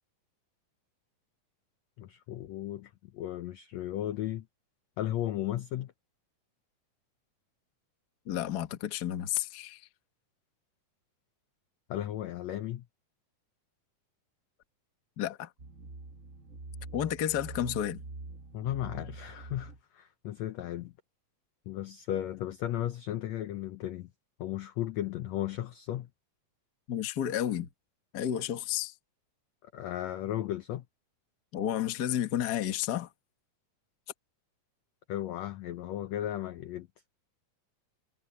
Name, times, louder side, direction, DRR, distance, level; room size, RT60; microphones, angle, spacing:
voice 1, 2.0-4.5 5.0-5.9 11.9-12.8 18.5-20.9 21.7-24.1 24.4-26.1 29.6-30.8 35.1-36.9, left 12 dB, 80° left, 1.6 m, -35 dB
voice 2, 8.3-9.8 15.2-15.5 16.9-18.0 26.9-27.7 28.1-28.9 31.5-33.1, left 11 dB, 55° left, 1.0 m, -31 dB
sound 1, 15.6-19.8, right 3 dB, 50° right, 0.8 m, -45 dB
omnidirectional pair, 4.0 m